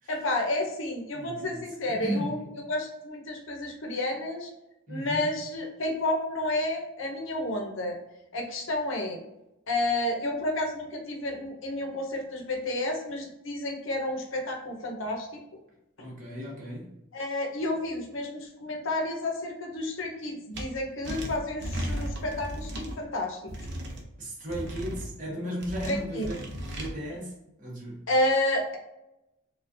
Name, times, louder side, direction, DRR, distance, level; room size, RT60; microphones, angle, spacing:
voice 1, 0.1-2.4 2.7-4.5 4.9-8.0 8.3-9.2 9.7-15.4 17.1-23.7 25.8-26.3 28.1-28.8, left 1 dB, 65° left, 2 dB, 0.7 m, -30 dB
voice 2, 1.1-2.4 4.9-5.3 16.0-16.9 24.2-28.1, equal, 35° right, -4 dB, 1.2 m, -36 dB
sound 1, 20.5-20.6 21.0-22.9 23.5-24.0 24.5-25.1 25.6-26.9, equal, 55° right, 0.6 m, -35 dB
4.3 x 2.3 x 2.6 m, 0.88 s
head